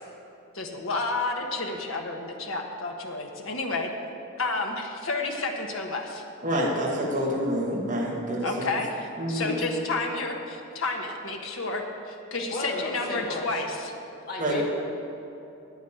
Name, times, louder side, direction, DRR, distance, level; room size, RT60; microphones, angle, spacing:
voice 1, 0.5-3.9 4.4-6.2 8.4-13.9, left 3 dB, 65° left, 2 dB, 1.4 m, -31 dB
voice 2, 6.4-8.7 9.2-9.6 14.4-14.6, equal, 35° right, -4 dB, 1.9 m, -27 dB
voice 3, 12.5-13.5 14.3-14.7, left 1 dB, 45° left, -3 dB, 2.4 m, -33 dB
9.6 x 9.3 x 8.5 m, 2.8 s
head